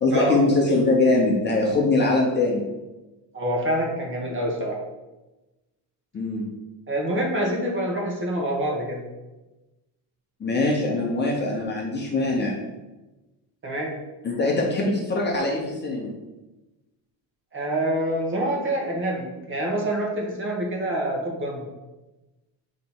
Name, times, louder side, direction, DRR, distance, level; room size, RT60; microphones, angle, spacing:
voice 1, 0.0-2.7 6.1-6.5 10.4-12.5 14.2-16.1, left 2 dB, 25° left, -1 dB, 0.9 m, -22 dB
voice 2, 3.3-4.8 6.9-9.0 13.6-13.9 17.5-21.6, right 1 dB, 25° right, -1 dB, 1.4 m, -26 dB
6.6 x 3.2 x 5.5 m, 1.1 s
cardioid pair, 150°, 45 cm